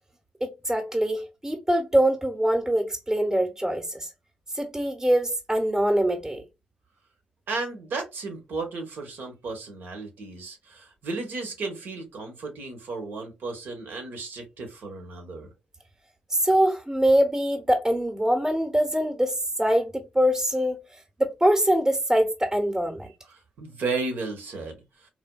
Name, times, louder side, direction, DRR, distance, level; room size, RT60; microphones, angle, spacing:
voice 1, 0.4-4.1 4.5-6.4 16.3-20.8 21.2-23.1, right 1 dB, 15° right, 0.8 m, -23 dB
voice 2, 7.5-15.5 23.3-24.8, right 3 dB, 75° right, 1.0 m, -34 dB
3.3 x 2.1 x 2.2 m
supercardioid pair, 45°, 3 cm